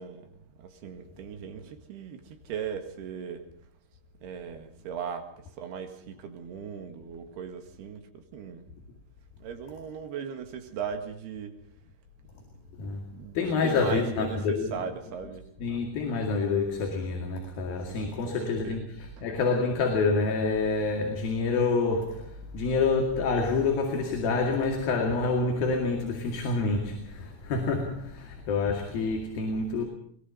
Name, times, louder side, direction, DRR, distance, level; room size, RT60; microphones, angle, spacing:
voice 1, 0.0-3.4 4.2-5.3 5.6-8.7 9.4-11.6 13.1-13.4 13.6-15.5 17.9-18.8 19.2-19.3, right 7 dB, 85° right, 3.9 m, -38 dB
voice 2, 12.8-14.8 15.6-29.8, left 4 dB, 65° left, 4.0 m, -27 dB
22.0 x 21.5 x 5.6 m
omnidirectional pair, 4.5 m